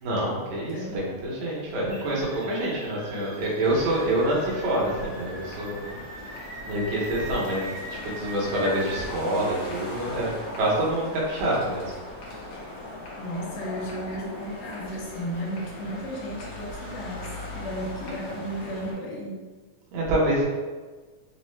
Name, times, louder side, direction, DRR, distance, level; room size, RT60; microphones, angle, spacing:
voice 1, 0.0-5.9 6.7-11.9 19.9-20.4, right 1 dB, 75° right, -4 dB, 2.2 m, -26 dB
voice 2, 0.7-1.0 13.2-19.4, equal, 90° left, -3 dB, 2.3 m, -34 dB
sound 1, 1.9-9.0, right 1 dB, 55° right, 1.7 m, -41 dB
sound 2, 3.6-18.9, left 1 dB, 75° left, 1.1 m, -39 dB
6.0 x 2.0 x 3.1 m, 1.3 s
omnidirectional pair, 3.5 m